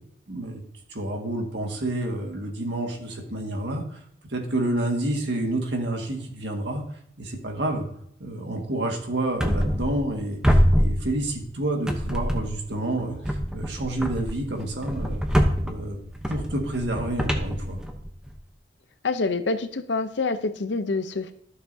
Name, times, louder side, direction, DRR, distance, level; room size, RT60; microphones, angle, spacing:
voice 1, 0.3-0.6 0.9-4.0 4.3-6.8 7.2-7.9 8.2-15.2 15.6-16.0 16.3-17.8, right 1 dB, 85° right, 2 dB, 1.9 m, -29 dB
sound 1, 9.4-10.2 10.4-11.5 11.9-12.7 13.2-18.3, equal, 5° right, 0.8 m, -25 dB
voice 2, 19.0-21.3, left 3 dB, 85° left, 11 dB, 0.7 m, -26 dB
13.0 x 6.8 x 2.8 m, 0.68 s
head